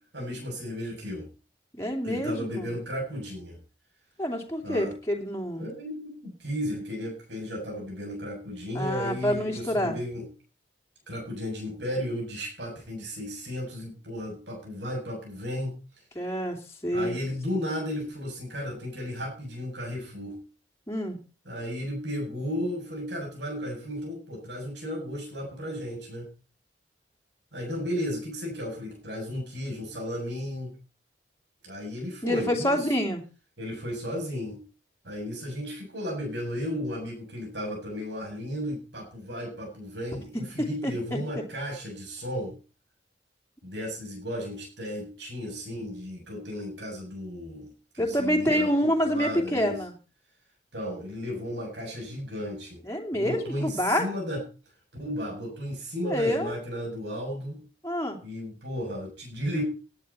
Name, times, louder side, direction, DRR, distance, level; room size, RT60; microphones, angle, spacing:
voice 1, 0.1-1.3 2.0-3.6 4.6-4.9 5.6-10.2 11.1-15.8 16.9-20.4 21.5-26.2 27.5-30.7 31.6-32.8 33.6-34.6 35.0-42.5 43.6-47.7 47.9-49.8 50.7-52.8 53.1-54.4 55.0-57.6 58.2-59.6, equal, 75° right, -1 dB, 7.7 m, -34 dB
voice 2, 1.7-2.7 4.2-5.7 8.7-10.0 16.1-17.1 20.9-21.2 32.2-33.2 40.6-40.9 48.0-49.9 52.8-54.1 56.0-56.6 57.8-58.2, equal, 15° left, 0 dB, 2.8 m, -27 dB
18.0 x 10.5 x 4.3 m, 0.34 s
head